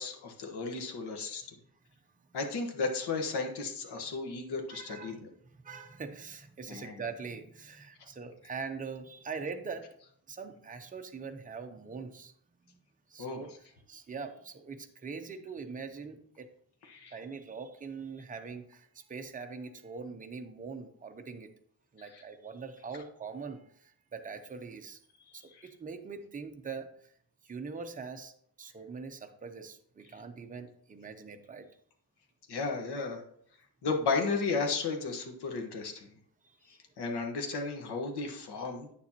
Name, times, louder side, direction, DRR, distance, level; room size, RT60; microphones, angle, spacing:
voice 1, 0.0-1.4 2.3-5.3 6.7-7.0 13.2-13.4 16.8-17.1 22.0-22.2 25.3-25.7 32.5-33.2 33.8-36.1 36.7-38.9, left 4 dB, 85° left, 4 dB, 1.4 m, -34 dB
voice 2, 4.7-5.2 5.5-9.9 10.3-12.3 12.7-12.8 13.1-13.5 13.9-16.5 17.1-21.5 21.9-25.0 25.3-27.1 27.4-31.7 36.4-36.8, right 5 dB, 20° right, 5 dB, 0.6 m, -43 dB
9.0 x 6.9 x 2.9 m, 0.66 s
wide cardioid pair, 175°, 39 cm